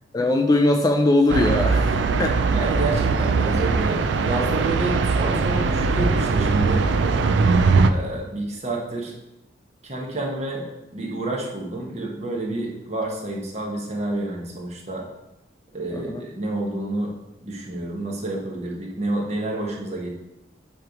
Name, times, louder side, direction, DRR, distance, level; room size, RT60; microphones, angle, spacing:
voice 1, 0.1-2.4 15.9-16.2, left 2 dB, 20° left, 4 dB, 0.3 m, -20 dB
sound 1, 1.3-7.9, right 4 dB, 75° right, 0.4 m, -20 dB
voice 2, 2.5-6.8 7.9-9.2 9.8-10.7 10.9-15.1 15.7-17.1 17.4-20.1, right 2 dB, 35° right, -1 dB, 1.2 m, -29 dB
7.7 x 3.1 x 5.0 m, 0.96 s
head